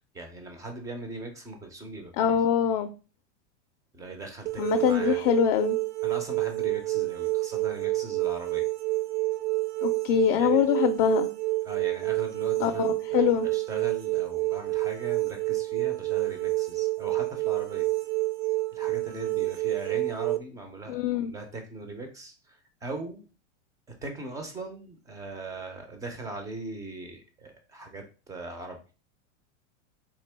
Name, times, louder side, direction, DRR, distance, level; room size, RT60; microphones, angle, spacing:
voice 1, 0.0-2.4 3.9-5.2 6.0-8.7 10.4-10.7 11.6-17.9 18.7-23.3 24.0-28.8, right 2 dB, 10° right, 5 dB, 0.3 m, -40 dB
voice 2, 2.2-2.9 4.6-5.8 9.8-11.3 12.6-13.5 20.9-21.3, left 10 dB, 55° left, 7 dB, 0.4 m, -24 dB
sound 1, 4.5-20.4, right 21 dB, 70° right, 0.6 m, -28 dB
3.7 x 2.9 x 3.2 m, 0.34 s
supercardioid pair, 145°, 37 cm